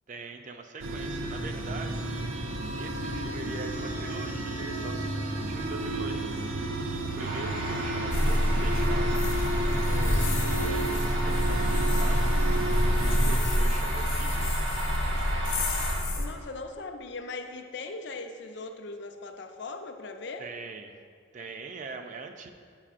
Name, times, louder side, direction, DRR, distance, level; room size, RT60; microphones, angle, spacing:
voice 1, 0.1-2.1 2.8-6.4 7.0-9.2 10.0-12.3 13.0-14.5 20.4-20.9 21.3-22.5, right 3 dB, 40° right, 6 dB, 0.4 m, -42 dB
sound 1, 0.8-13.4, right 1 dB, 85° right, 0.6 m, -32 dB
sound 2, 7.2-15.9, right 1 dB, 70° right, 1.1 m, -35 dB
sound 3, 8.1-16.3, equal, 70° left, 0.9 m, -27 dB
voice 2, 9.9-10.3 16.2-20.5, left 3 dB, 55° left, 6 dB, 0.4 m, -39 dB
9.0 x 5.6 x 2.5 m, 2.1 s
head